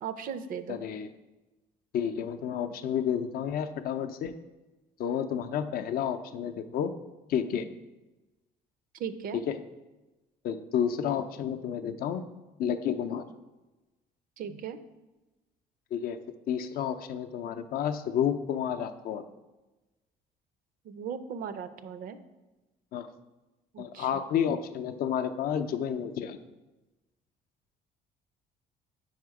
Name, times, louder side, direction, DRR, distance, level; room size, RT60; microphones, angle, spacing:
voice 1, 0.0-0.8 9.0-9.4 14.4-14.8 20.8-22.2 23.7-24.2, right 7 dB, 55° right, 12 dB, 0.4 m, -37 dB
voice 2, 0.7-1.1 1.9-4.3 5.0-6.9 7.3-7.7 9.5-9.6 10.4-12.2 12.6-13.2 15.9-16.2 16.5-19.2 22.9-23.1 23.8-26.4, left 8 dB, 60° left, 9 dB, 0.4 m, -30 dB
5.0 x 4.3 x 4.7 m, 1.1 s
cardioid pair, 110°, 17 cm